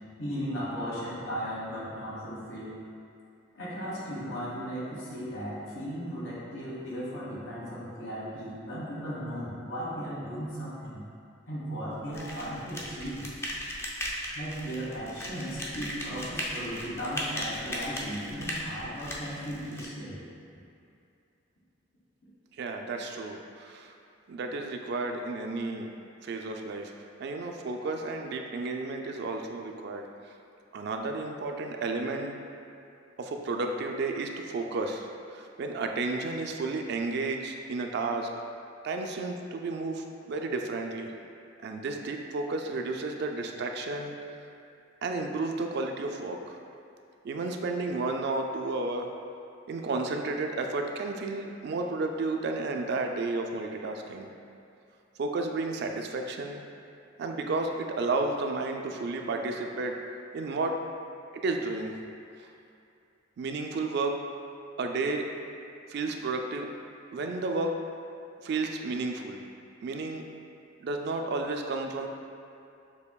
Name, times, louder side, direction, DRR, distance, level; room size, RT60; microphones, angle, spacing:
voice 1, 0.2-2.8 3.5-11.0 11.5-13.3 14.3-20.2, equal, 85° left, -7 dB, 1.3 m, -36 dB
sound 1, 12.1-19.9, equal, 15° left, 0.4 m, -37 dB
voice 2, 22.6-23.9 24.3-25.9 26.2-26.9 27.2-30.1 30.7-32.4 33.2-38.3 38.8-41.1 41.6-44.2 45.0-46.6 47.2-49.1 49.7-54.3 55.2-56.6 57.2-60.0 60.3-60.8 61.3-62.0 63.4-64.2 64.8-65.3 65.9-66.7 67.1-67.8 68.4-69.4 69.8-70.2 70.8-72.1, right 3 dB, 60° right, 3 dB, 0.3 m, -32 dB
6.8 x 2.8 x 2.2 m, 2.6 s
head